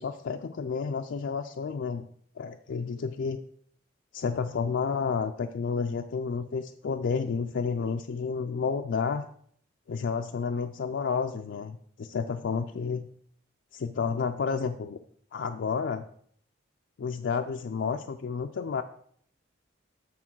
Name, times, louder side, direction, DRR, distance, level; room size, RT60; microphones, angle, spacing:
voice 1, 0.0-2.1 2.4-3.4 4.1-9.2 9.9-13.1 13.7-15.0 15.3-16.0 17.0-18.8, left 5 dB, 75° left, 5 dB, 0.4 m, -30 dB
8.5 x 3.8 x 6.0 m, 0.64 s
head